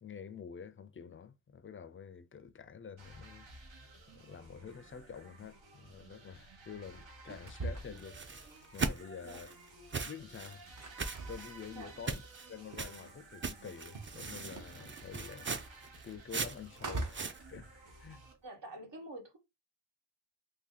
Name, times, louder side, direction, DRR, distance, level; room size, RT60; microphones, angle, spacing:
voice 1, 0.0-3.5 4.1-8.5 8.7-9.5 10.0-10.6 11.3-12.2 12.5-15.5 16.0-17.7 18.0-18.2, left 7 dB, 30° left, 0.4 m, -48 dB
sound 1, 3.0-18.3, right 2 dB, 85° right, 1.3 m, -55 dB
sound 2, 7.0-9.1 9.4-13.3 13.5-18.3, right 2 dB, 45° right, 0.9 m, -44 dB
sound 3, 8.0-9.5 9.9-10.6 11.0-11.6 12.1-12.5 12.8-13.1 13.4-17.4, right 4 dB, 25° right, 0.5 m, -39 dB
voice 2, 18.4-19.4, right 2 dB, 65° right, 1.4 m, -47 dB
2.8 x 2.7 x 3.8 m
wide cardioid pair, 85°, 45 cm